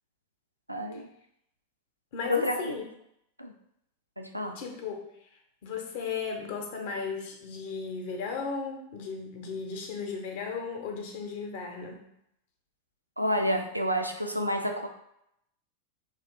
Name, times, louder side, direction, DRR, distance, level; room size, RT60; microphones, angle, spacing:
voice 1, 0.7-1.1 2.3-2.8 3.4-3.5 4.2-4.6 13.2-14.9, equal, 90° right, 4 dB, 0.4 m, -29 dB
voice 2, 2.1-2.8 4.5-5.0 5.6-12.0, left 5 dB, 50° left, 3 dB, 0.7 m, -35 dB
3.2 x 2.4 x 3.7 m, 0.76 s
figure-of-eight pair, 90°, 0 cm